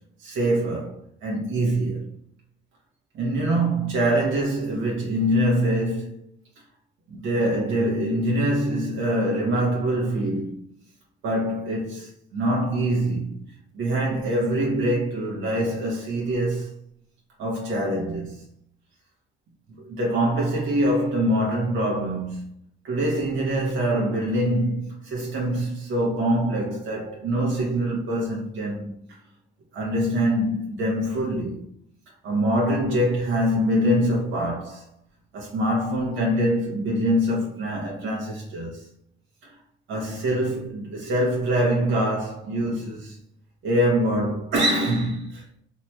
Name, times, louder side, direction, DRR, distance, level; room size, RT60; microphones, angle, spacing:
voice 1, 0.2-2.0 3.1-6.3 7.1-10.7 11.2-13.3 13.7-16.8 17.4-18.4 19.8-22.5 22.8-29.0 29.7-31.6 32.2-34.9 35.3-38.9 39.4-39.6 39.9-43.2 43.6-45.4, right 1 dB, 85° right, 0.9 m, -24 dB
2.8 x 2.8 x 2.2 m
cardioid pair, 90°, 20 cm